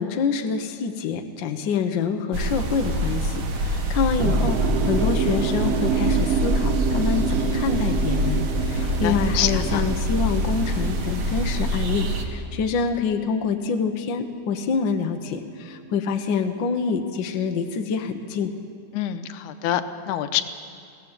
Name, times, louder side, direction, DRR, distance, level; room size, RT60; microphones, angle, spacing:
voice 1, 0.0-18.5, left 5 dB, 60° left, 6 dB, 1.2 m, -26 dB
sound 1, 2.3-12.2, equal, 45° right, 1.4 m, -25 dB
sound 2, 4.2-14.3 14.6-16.2, right 7 dB, 65° right, 1.7 m, -29 dB
voice 2, 8.8-9.8 18.9-20.4, left 11 dB, 90° left, 10 dB, 2.2 m, -26 dB
21.5 x 17.0 x 7.4 m, 2.3 s
omnidirectional pair, 3.5 m